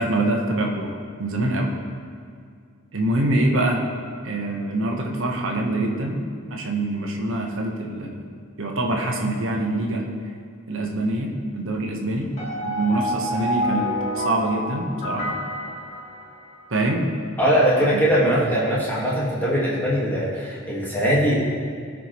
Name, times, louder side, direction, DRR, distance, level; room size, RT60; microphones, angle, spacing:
voice 1, 0.0-1.7 2.9-3.8 4.2-6.2 6.5-8.2 8.6-10.1 10.7-12.3 12.6-13.9 14.2-15.3 16.7-17.0 17.8-18.4, right 2 dB, 70° right, 1 dB, 1.0 m, -25 dB
sound 1, 12.4-16.7, left 1 dB, 35° left, 1.4 m, -28 dB
voice 2, 17.4-21.3, equal, 10° left, -7 dB, 1.6 m, -21 dB
14.5 x 4.9 x 3.0 m, 2.2 s
head